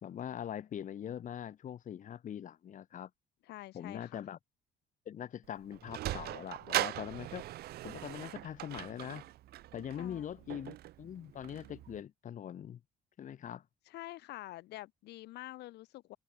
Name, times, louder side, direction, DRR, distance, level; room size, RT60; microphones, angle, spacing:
voice 1, 0.0-3.1 3.7-4.4 5.1-7.5 7.8-9.3 9.7-12.8 13.2-13.6, left 9 dB, 50° left, 1.9 m, -42 dB
voice 2, 3.4-4.2 10.0-10.3 13.9-16.2, left 17 dB, 80° left, 1.7 m, -47 dB
Sliding door, 5.4-12.0, right 15 dB, 70° right, 0.9 m, -40 dB
open air
cardioid pair, 110°, 17 cm